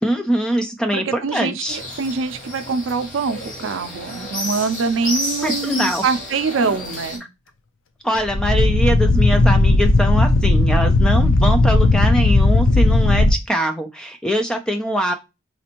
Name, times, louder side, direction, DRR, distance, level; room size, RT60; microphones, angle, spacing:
voice 1, 0.0-1.8 5.4-6.0 8.0-15.1, equal, 5° left, 0.3 m, -22 dB
voice 2, 0.9-7.2, right 4 dB, 75° right, 0.4 m, -24 dB
sound 1, 1.7-7.2, left 1 dB, 40° left, 1.3 m, -30 dB
sound 2, 8.2-13.3, left 2 dB, 80° left, 0.5 m, -15 dB
4.1 x 2.5 x 2.9 m
head